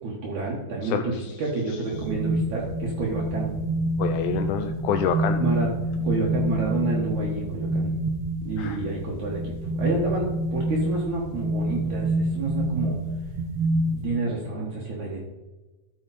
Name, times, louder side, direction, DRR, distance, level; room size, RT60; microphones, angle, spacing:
voice 1, 0.0-3.6 5.3-5.7 6.0-7.9 8.4-13.0 13.9-15.2, right 3 dB, 60° right, -3 dB, 2.6 m, -29 dB
voice 2, 0.8-1.1 4.0-5.4 8.6-8.8, left 8 dB, 85° left, 8 dB, 1.8 m, -27 dB
sound 1, 1.9-14.1, right 1 dB, 85° right, 1.3 m, -27 dB
13.5 x 6.7 x 4.2 m, 1.1 s
omnidirectional pair, 4.1 m